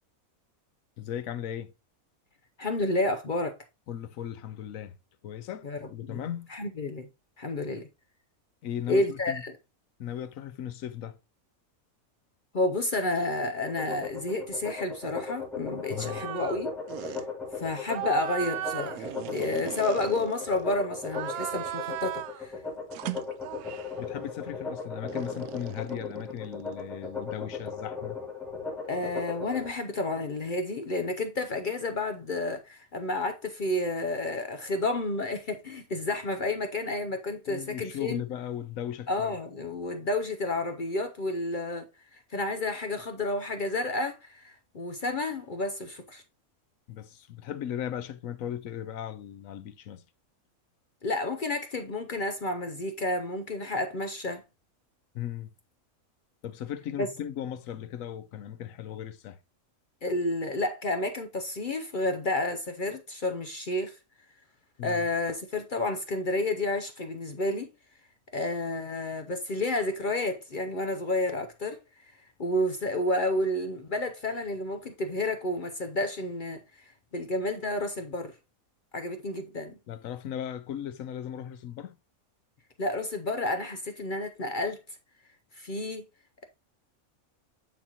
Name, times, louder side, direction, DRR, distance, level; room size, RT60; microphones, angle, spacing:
voice 1, 1.0-1.7 3.9-4.9 5.2-6.5 8.6-9.4 10.0-11.2 15.9-16.3 24.0-28.2 37.5-39.3 46.9-50.0 55.1-55.5 56.4-59.4 64.8-65.0 79.9-81.9, left 10 dB, 70° left, 1.0 m, -37 dB
voice 2, 2.6-3.5 5.6-7.1 7.4-7.9 8.9-9.5 12.5-16.7 17.0-17.2 17.5-22.6 28.9-38.2 39.1-46.2 51.0-54.4 57.0-57.1 60.0-64.0 64.8-67.7 68.3-72.1 72.4-78.3 78.9-79.8 82.8-84.8 85.5-86.0, left 2 dB, 50° left, 0.6 m, -30 dB
sound 1, 13.7-29.7, left 5 dB, ahead, 2.6 m, -37 dB
sound 2, 16.0-16.6 16.9-17.2 17.8-20.6 21.0-22.4 22.9-24.0 25.1-26.9, right 13 dB, 85° right, 1.0 m, -37 dB
9.1 x 4.2 x 2.9 m
omnidirectional pair, 1.5 m